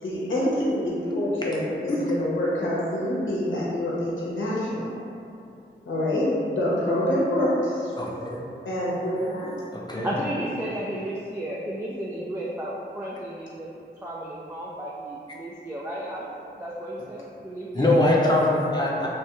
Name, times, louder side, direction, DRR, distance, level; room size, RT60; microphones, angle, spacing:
voice 1, 0.0-5.0 5.9-7.9 8.7-9.7, left 1 dB, 80° left, -6 dB, 0.8 m, -26 dB
voice 2, 8.0-8.4 9.7-10.1 17.7-19.1, left 1 dB, 20° left, -4 dB, 0.7 m, -22 dB
voice 3, 10.0-13.7 14.0-18.2, right 1 dB, 10° right, -6 dB, 0.3 m, -33 dB
3.1 x 2.2 x 3.0 m, 2.6 s
cardioid pair, 45°, 20 cm